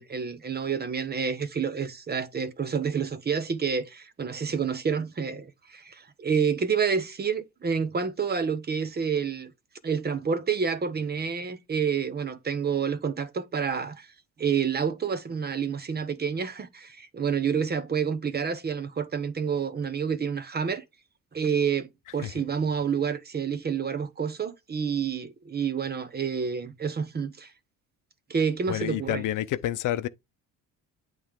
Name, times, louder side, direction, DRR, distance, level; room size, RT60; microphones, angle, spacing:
voice 1, 0.0-9.5 9.8-14.1 14.4-20.8 21.3-27.5 28.3-29.2, right 6 dB, 30° right, 0.9 m, -28 dB
voice 2, 28.7-30.1, left 13 dB, 60° left, 0.7 m, -29 dB
8.5 x 3.4 x 3.7 m
cardioid pair, 110°, 35 cm